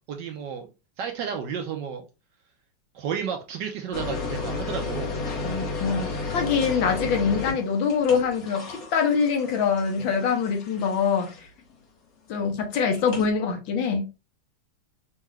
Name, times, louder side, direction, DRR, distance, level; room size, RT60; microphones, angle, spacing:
voice 1, 0.1-0.7 1.0-2.1 2.9-5.2, right 7 dB, 75° right, 1.1 m, -32 dB
sound 1, 3.9-11.6 12.9-13.3, left 3 dB, 50° left, 1.4 m, -33 dB
voice 2, 5.4-11.3 12.3-14.0, left 6 dB, 70° left, 1.6 m, -24 dB
5.4 x 2.4 x 3.1 m
omnidirectional pair, 2.3 m